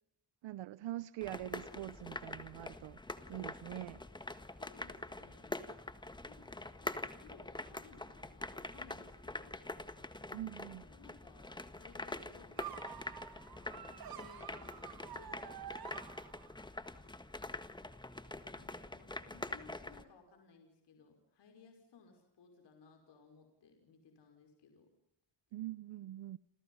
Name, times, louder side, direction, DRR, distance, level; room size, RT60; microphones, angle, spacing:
voice 1, 0.4-3.0 3.3-4.0 10.3-10.8 25.5-26.4, right 14 dB, 90° right, 0.9 m, -44 dB
sound 1, 1.2-20.0, left 2 dB, 10° left, 1.6 m, -45 dB
voice 2, 4.6-5.6 6.1-9.7 10.3-12.9 13.3-16.0 18.5-24.9, left 4 dB, 70° left, 5.7 m, -61 dB
sound 2, 12.6-16.7, right 11 dB, 55° right, 1.3 m, -49 dB
29.5 x 28.0 x 5.6 m
cardioid pair, 125°, 43 cm